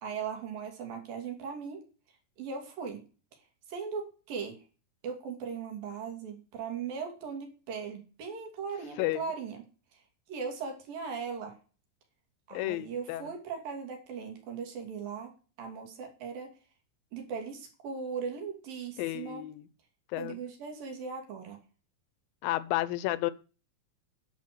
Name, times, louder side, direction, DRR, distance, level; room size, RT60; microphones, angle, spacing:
voice 1, 0.0-1.8 2.4-3.0 3.7-4.6 5.0-9.6 9.9-10.0 10.3-11.6 12.5-15.3 15.6-16.5 17.1-19.4 20.2-21.6, right 6 dB, 75° right, 4.2 m, -38 dB
voice 2, 9.0-9.3 12.5-13.3 19.0-19.7 20.1-20.4 22.4-23.3, left 16 dB, 80° left, 2.5 m, -32 dB
10.5 x 5.7 x 6.8 m
omnidirectional pair, 4.1 m